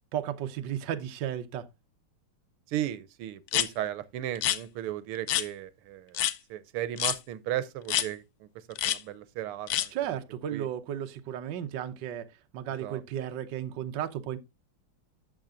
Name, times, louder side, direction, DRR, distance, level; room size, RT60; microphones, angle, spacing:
voice 1, 0.1-1.7 9.9-12.3 12.5-14.4, right 10 dB, 65° right, 1.4 m, -34 dB
voice 2, 2.7-9.9 10.5-10.7 12.8-13.0, right 12 dB, 90° right, 1.7 m, -36 dB
sound 1, 3.5-3.7 4.3-4.6 5.3-5.5 6.1-6.3 7.0-7.2 7.9-8.1 8.7-9.0 9.7-9.9, left 12 dB, 90° left, 0.8 m, -27 dB
12.5 x 7.5 x 2.5 m
omnidirectional pair, 2.4 m